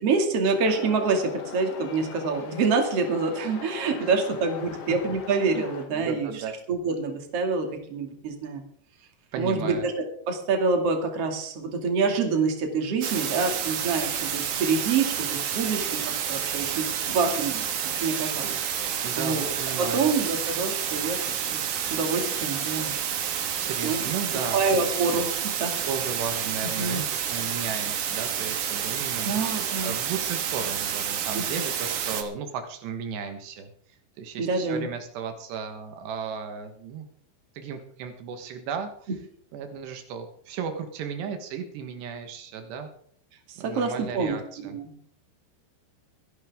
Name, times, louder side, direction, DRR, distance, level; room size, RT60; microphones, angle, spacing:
voice 1, 0.0-6.3 6.7-8.6 9.3-9.9 10.3-16.0 16.3-17.6 18.0-22.9 23.8-24.0 24.3-25.8 26.8-27.0 29.2-30.0 31.3-31.4 34.4-34.9 43.5-44.9, right 4 dB, 40° right, 3 dB, 3.0 m, -27 dB
sound 1, 0.6-5.9, left 6 dB, 85° left, 4.4 m, -39 dB
voice 2, 6.0-6.5 9.3-9.9 19.0-20.1 23.6-25.0 25.9-29.4 29.8-33.7 34.2-37.1 37.6-38.9 39.5-42.9 43.6-44.8, right 6 dB, 80° right, 6 dB, 3.6 m, -35 dB
sound 2, 13.0-32.2, right 8 dB, 60° right, 2.5 m, -29 dB
23.5 x 11.0 x 3.7 m, 0.63 s
omnidirectional pair, 4.8 m